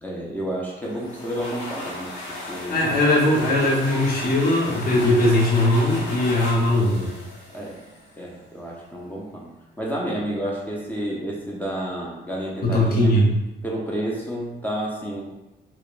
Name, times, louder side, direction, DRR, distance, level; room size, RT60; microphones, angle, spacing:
voice 1, 0.0-2.9 7.5-7.8 8.2-9.5 9.8-13.1 13.6-15.2, right 1 dB, 10° left, -4 dB, 0.5 m, -30 dB
sound 1, 0.8-8.3, left 2 dB, 75° left, 0.8 m, -35 dB
voice 2, 2.7-7.1 12.6-13.3, left 1 dB, 50° left, -3 dB, 0.8 m, -19 dB
2.8 x 2.1 x 2.4 m, 0.97 s
cardioid pair, 90°, 20 cm